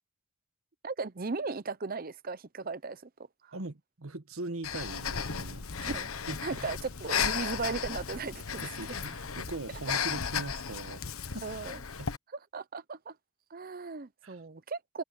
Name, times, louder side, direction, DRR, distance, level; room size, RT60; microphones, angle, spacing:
voice 1, 0.8-3.1 3.4-3.5 5.9-6.1 6.4-8.7 11.4-11.8 12.5-13.2 13.5-15.0, right 4 dB, 40° right, 0.7 m, -37 dB
voice 2, 3.5-5.9 6.3-6.4 8.6-11.5 12.0-12.1 14.2-14.4, right 2 dB, 75° right, 1.4 m, -41 dB
Breathing, 4.6-12.2, left 6 dB, 80° left, 1.2 m, -35 dB
head